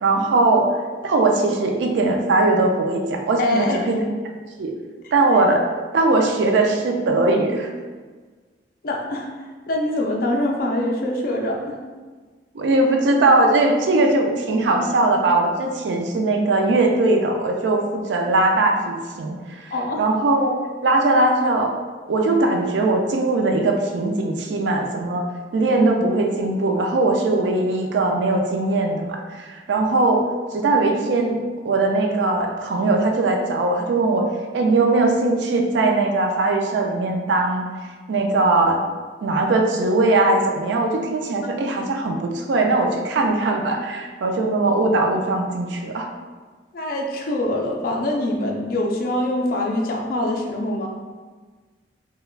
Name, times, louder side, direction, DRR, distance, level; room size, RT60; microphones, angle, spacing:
voice 1, 0.0-4.0 4.6-4.7 5.1-5.7 5.9-7.7 12.5-20.5 20.8-21.7 22.1-34.3 34.5-37.7 38.1-38.8 39.2-46.1, right 2 dB, 70° right, 3 dB, 0.3 m, -20 dB
voice 2, 3.4-3.8 5.0-5.1 8.8-9.3 9.7-11.8 19.7-20.0 46.7-50.9, left 1 dB, 50° left, 0 dB, 0.4 m, -24 dB
3.2 x 2.2 x 2.3 m, 1.4 s
head